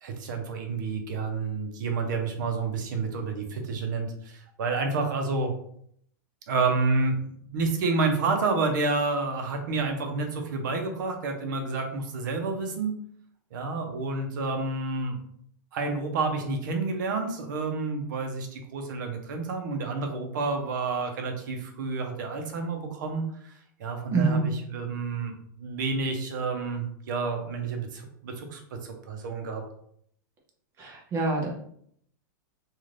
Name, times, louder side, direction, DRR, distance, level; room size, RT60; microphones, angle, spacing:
voice 1, 0.0-5.5 6.5-7.2 7.5-12.9 13.5-15.2 15.7-25.3 25.6-29.6, right 3 dB, 65° right, 4 dB, 0.7 m, -29 dB
voice 2, 24.1-24.5 30.8-31.5, right 4 dB, 25° right, -2 dB, 0.6 m, -25 dB
2.5 x 2.4 x 3.2 m, 0.67 s
supercardioid pair, 155°, 11 cm